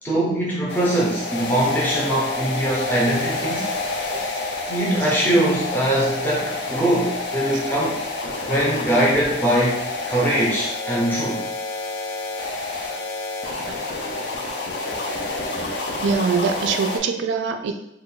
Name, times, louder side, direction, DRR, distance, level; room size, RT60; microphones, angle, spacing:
voice 1, 0.0-3.7 4.7-8.0 8.5-11.4, right 1 dB, 10° left, -5 dB, 0.6 m, -22 dB
sound 1, 0.7-17.0, left 3 dB, 65° left, 0.5 m, -29 dB
voice 2, 4.1-4.4 13.7-13.8 15.9-17.7, right 5 dB, 80° right, 7 dB, 0.3 m, -24 dB
2.2 x 2.2 x 3.9 m, 0.81 s
head